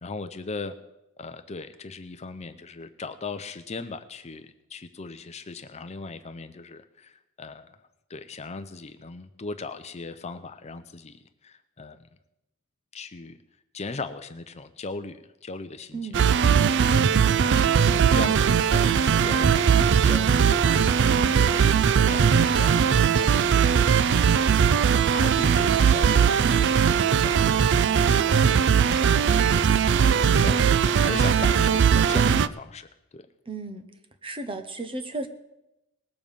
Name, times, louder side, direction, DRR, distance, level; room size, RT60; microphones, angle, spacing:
voice 1, 0.0-0.8 1.2-7.8 8.1-12.1 12.9-13.4 13.7-16.1 16.8-19.6 20.0-23.5 25.1-33.3, left 3 dB, 30° left, 9 dB, 0.6 m, -39 dB
voice 2, 15.9-16.2 26.2-26.7 30.1-30.6 33.5-33.9 34.2-35.3, right 2 dB, 25° right, 7 dB, 1.0 m, -35 dB
sound 1, 16.1-32.5, right 7 dB, 55° right, 0.4 m, -20 dB
20.0 x 7.0 x 5.4 m, 0.90 s
head